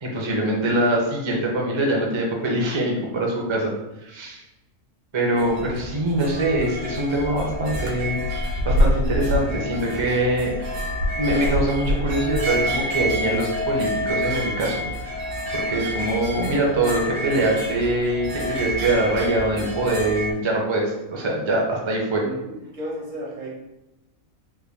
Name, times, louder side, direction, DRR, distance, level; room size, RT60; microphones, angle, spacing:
voice 1, 0.0-3.7 4.0-4.4 5.1-10.6 11.1-15.3 15.5-22.2, right 1 dB, 35° right, -1 dB, 0.4 m, -23 dB
sound 1, 5.4-20.3, equal, 90° right, 1.2 m, -27 dB
voice 2, 22.2-23.5, right 1 dB, 65° right, -3 dB, 1.3 m, -34 dB
3.4 x 2.2 x 3.4 m, 0.94 s
omnidirectional pair, 1.4 m